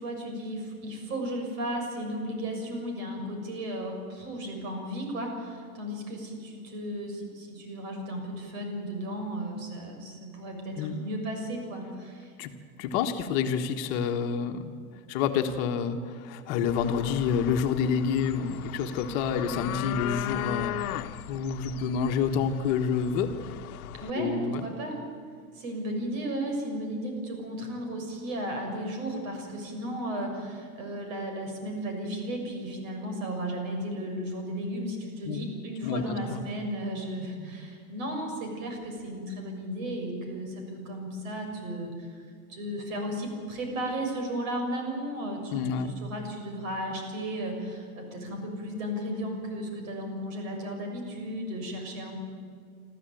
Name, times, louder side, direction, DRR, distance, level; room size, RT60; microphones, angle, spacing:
voice 1, 0.0-12.3 24.0-25.0 25.5-42.2 42.5-52.2, right 1 dB, 65° right, 3 dB, 6.7 m, -34 dB
voice 2, 12.8-14.7 15.1-23.3 24.2-24.7 35.3-35.5 35.8-36.4 45.5-46.0, left 6 dB, 40° left, 6 dB, 1.4 m, -28 dB
sound 1, 16.7-24.1, left 13 dB, 80° left, 1.0 m, -37 dB
26.5 x 13.5 x 9.1 m, 2.1 s
supercardioid pair, 155°, 43 cm